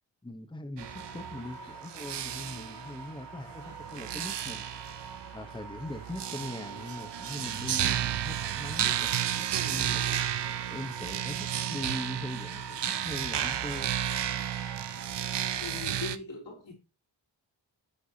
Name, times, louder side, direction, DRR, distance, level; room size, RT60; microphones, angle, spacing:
voice 1, 0.2-4.8 5.3-10.2 10.7-13.9, left 1 dB, 10° left, 0.9 m, -41 dB
sound 1, 0.8-15.8, right 4 dB, 50° right, 2.6 m, -46 dB
sound 2, 0.8-16.2, right 10 dB, 65° right, 0.6 m, -33 dB
voice 2, 15.6-16.8, left 4 dB, 70° left, 3.1 m, -40 dB
8.5 x 4.6 x 2.8 m
cardioid pair, 55°, 46 cm